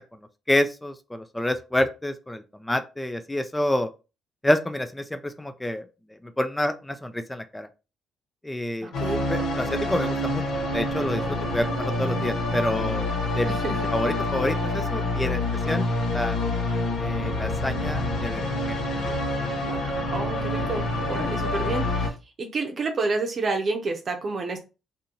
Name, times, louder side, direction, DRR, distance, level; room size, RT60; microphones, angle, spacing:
voice 1, 0.5-3.9 4.4-5.8 6.4-7.7 8.4-8.9 9.3-10.4 10.7-11.2 11.5-13.1 13.4-13.5 13.9-15.4 15.7-15.8 16.1-16.4 17.0-18.8 19.1-19.2 21.1-21.2, left 1 dB, 10° left, 0.4 m, -28 dB
voice 2, 8.8-9.2 13.5-13.9 19.6-24.6, right 3 dB, 45° right, 0.7 m, -30 dB
sound 1, 8.9-22.1, left 2 dB, 80° left, 1.0 m, -27 dB
2.8 x 2.7 x 3.8 m
cardioid pair, 90°, 0 cm